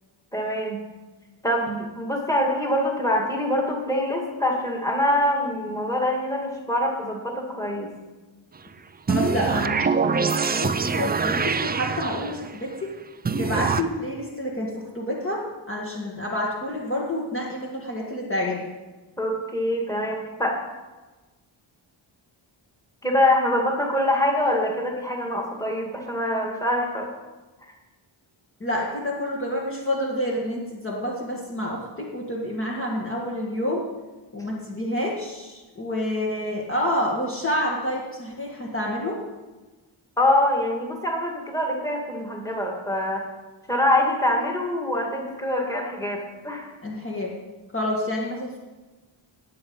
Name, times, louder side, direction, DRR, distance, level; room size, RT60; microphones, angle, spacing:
voice 1, 0.3-0.8 1.4-7.9 9.3-9.6 19.2-20.6 23.0-27.1 40.2-43.2 43.7-46.7, left 1 dB, 5° left, 0 dB, 2.1 m, -24 dB
voice 2, 9.1-12.9 13.4-18.7 28.6-33.8 34.3-39.2 46.8-47.3 47.7-48.6, left 1 dB, 25° left, -3 dB, 1.7 m, -28 dB
sound 1, 9.1-12.6 13.3-13.8, right 5 dB, 20° right, 0.3 m, -24 dB
19.0 x 7.9 x 5.4 m, 1.2 s
wide cardioid pair, 170°, 48 cm